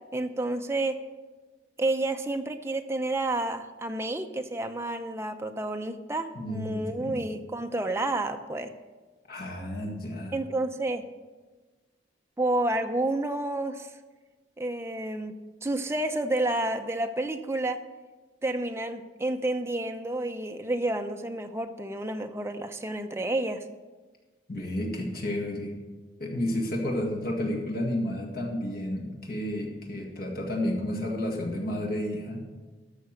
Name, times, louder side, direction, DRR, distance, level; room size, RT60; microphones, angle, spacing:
voice 1, 0.1-1.0 1.8-8.7 10.3-11.0 12.4-13.9 14.6-15.3 15.6-17.8 18.4-23.6, right 2 dB, 15° right, 6 dB, 0.6 m, -30 dB
voice 2, 6.3-7.2 9.3-10.4 24.5-25.7 26.2-32.5, left 1 dB, 55° left, -1 dB, 1.8 m, -31 dB
13.0 x 6.0 x 6.4 m, 1.3 s
head